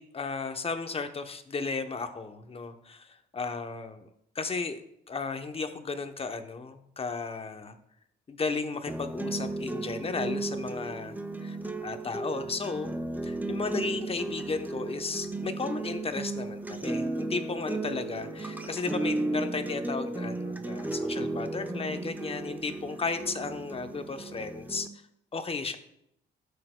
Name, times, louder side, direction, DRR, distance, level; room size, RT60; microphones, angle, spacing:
voice 1, 0.0-4.1 4.3-4.8 5.1-7.7 8.3-12.9 13.2-24.9 25.3-25.8, left 4 dB, 30° left, 8 dB, 0.8 m, -34 dB
sound 1, 8.9-24.9, right 2 dB, 10° right, 0.6 m, -35 dB
12.0 x 6.6 x 2.2 m, 0.78 s
cardioid pair, 90°, 20 cm